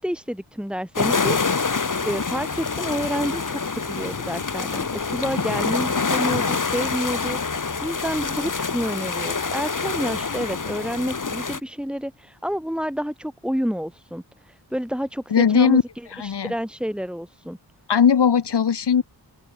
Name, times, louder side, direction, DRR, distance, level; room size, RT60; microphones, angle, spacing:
voice 1, 0.0-1.6 2.0-15.8 16.2-17.6, equal, ahead, 7.1 m, -29 dB
sound 1, 1.0-11.6, left 4 dB, 50° left, 6.4 m, -26 dB
voice 2, 15.3-15.8 16.1-16.5 17.9-19.0, left 7 dB, 90° left, 2.3 m, -18 dB
open air
wide cardioid pair, 135°, 39 cm